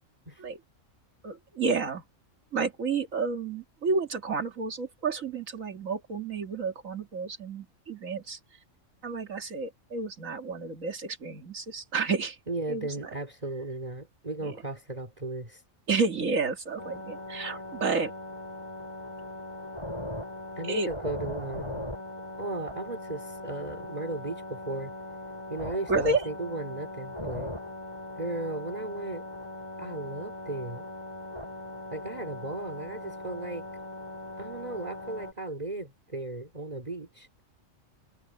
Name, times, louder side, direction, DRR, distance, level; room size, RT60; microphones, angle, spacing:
voice 1, 1.2-2.0 2.5-8.4 9.0-12.4 12.7-12.9 14.4-14.5 15.9-18.1 20.6-20.9 25.9-26.2, right 4 dB, 85° right, 2.5 m, -30 dB
voice 2, 12.5-15.6 20.6-21.9 22.4-24.9 25.5-27.5 28.2-29.2 29.8-30.9 31.9-33.7 34.4-37.4, right 2 dB, 30° right, 3.2 m, -36 dB
sound 1, 16.8-35.3, left 1 dB, 20° left, 3.9 m, -40 dB
omnidirectional pair, 1.3 m